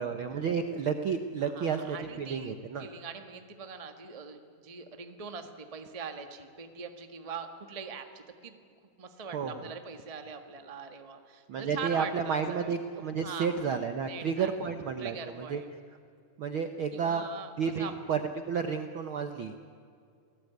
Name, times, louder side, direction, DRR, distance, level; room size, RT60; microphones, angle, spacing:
voice 1, 0.0-2.9 9.3-9.7 11.5-15.6 16.4-17.3 17.6-19.6, right 6 dB, 70° right, 7 dB, 1.2 m, -31 dB
voice 2, 1.4-8.6 9.0-12.7 13.2-13.6 14.1-14.5 15.0-15.7 16.9-17.9, right 6 dB, 50° right, 6 dB, 0.4 m, -42 dB
29.0 x 18.5 x 9.4 m, 2.3 s
omnidirectional pair, 3.7 m